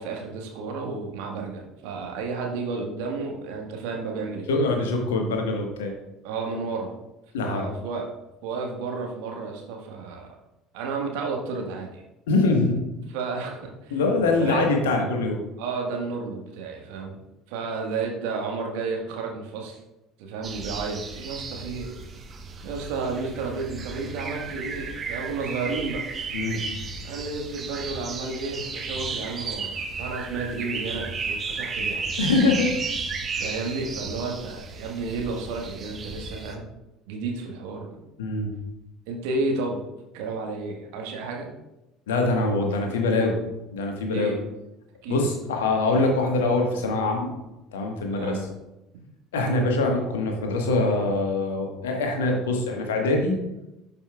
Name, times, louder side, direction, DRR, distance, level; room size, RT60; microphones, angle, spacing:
voice 1, 0.0-4.5 6.2-6.9 7.4-8.1 8.4-10.4 10.7-12.0 13.1-14.0 14.4-14.9 15.6-17.2 17.5-19.8 20.2-21.9 22.6-26.0 27.0-32.0 33.3-36.7 37.1-37.9 39.1-39.8 40.1-41.5 44.1-44.4 45.0-45.3 48.1-48.5, right 4 dB, 60° right, 1 dB, 1.5 m, -32 dB
voice 2, 4.5-5.9 7.3-7.7 12.3-12.8 13.9-15.4 26.3-26.6 32.2-32.7 38.2-38.5 42.1-43.4 43.7-44.3 45.1-47.3 47.7-48.4 49.3-53.4, left 2 dB, 70° left, 2 dB, 1.4 m, -23 dB
sound 1, 20.4-36.5, right 4 dB, 30° right, 1.0 m, -34 dB
11.5 x 5.5 x 2.4 m, 0.94 s
figure-of-eight pair, 65°, 0 cm